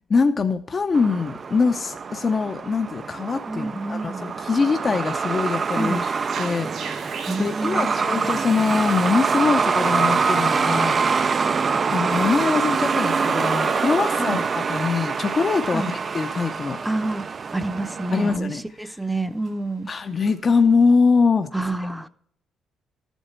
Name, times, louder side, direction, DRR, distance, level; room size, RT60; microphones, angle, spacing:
voice 1, 0.1-6.1 6.4-11.0 11.9-16.8 18.1-18.9 19.9-21.5, left 4 dB, 40° left, 0.7 m, -23 dB
Truck, 0.9-18.4, right 5 dB, 40° right, 0.4 m, -25 dB
voice 2, 3.5-4.3 5.8-6.0 7.3-8.3 14.2-14.4 15.7-15.9 16.8-17.3 17.5-19.9 21.5-22.1, right 2 dB, 5° right, 0.7 m, -28 dB
sound 1, 4.6-20.6, right 6 dB, 75° right, 2.6 m, -47 dB
13.0 x 8.1 x 4.5 m
cardioid pair, 90°, 0 cm